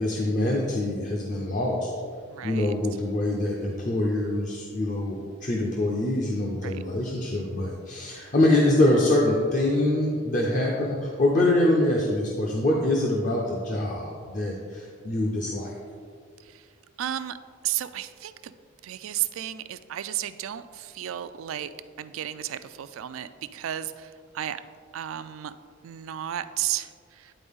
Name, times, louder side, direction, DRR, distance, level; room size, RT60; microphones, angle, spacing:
voice 1, 0.0-1.9 2.4-15.7, left 1 dB, 40° left, -2 dB, 0.6 m, -24 dB
voice 2, 2.3-2.7 6.6-6.7 16.5-16.6 17.0-17.4 17.6-18.5 18.8-21.7 22.0-24.6 24.9-25.5 25.8-26.9 27.2-27.3, right 12 dB, 80° right, 13 dB, 0.3 m, -33 dB
10.0 x 4.2 x 3.6 m, 2.1 s
head